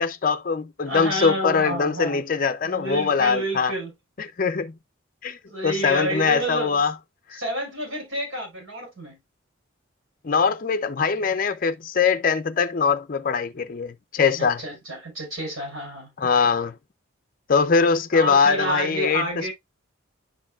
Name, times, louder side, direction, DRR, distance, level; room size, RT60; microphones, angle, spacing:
voice 1, 0.0-3.7 4.2-4.7 5.2-5.4 5.6-6.9 7.3-7.4 10.2-14.6 16.2-16.8 17.5-19.5, left 5 dB, 40° left, 0.5 m, -22 dB
voice 2, 0.9-2.2 2.6-3.9 5.5-6.8 7.4-9.2 14.4-16.3 18.1-19.5, right 1 dB, 80° right, 5.2 m, -29 dB
10.5 x 4.4 x 2.3 m
head